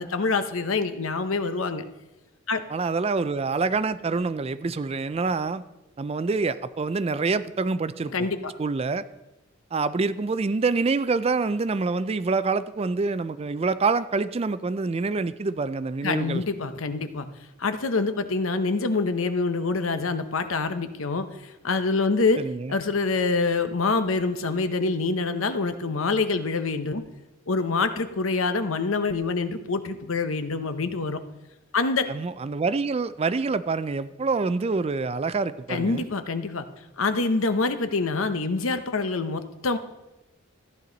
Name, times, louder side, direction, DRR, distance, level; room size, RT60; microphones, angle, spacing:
voice 1, 0.0-1.8 2.5-2.6 8.1-8.5 16.0-17.3 17.6-22.4 22.7-27.0 27.5-31.2 31.7-32.1 35.7-36.6 37.0-39.8, left 3 dB, 80° left, 10 dB, 0.9 m, -26 dB
voice 2, 2.7-5.6 6.0-8.3 8.6-9.0 9.7-16.4 22.4-22.7 32.1-36.0, right 4 dB, 30° right, 15 dB, 0.4 m, -26 dB
14.0 x 10.5 x 4.0 m, 0.99 s
head